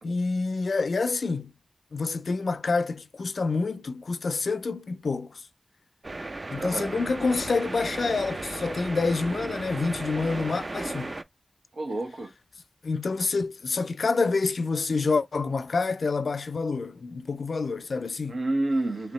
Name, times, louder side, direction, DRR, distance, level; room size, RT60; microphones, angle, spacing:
voice 1, 0.0-1.5 1.9-5.4 6.5-11.1 12.8-18.4, left 4 dB, 75° left, 0.4 m, -27 dB
sound 1, 6.0-11.2, right 2 dB, 40° right, 0.4 m, -35 dB
voice 2, 6.6-6.9 11.7-12.3 18.2-19.1, right 2 dB, 80° right, 1.2 m, -29 dB
3.3 x 2.8 x 3.0 m
wide cardioid pair, 105°, 0 cm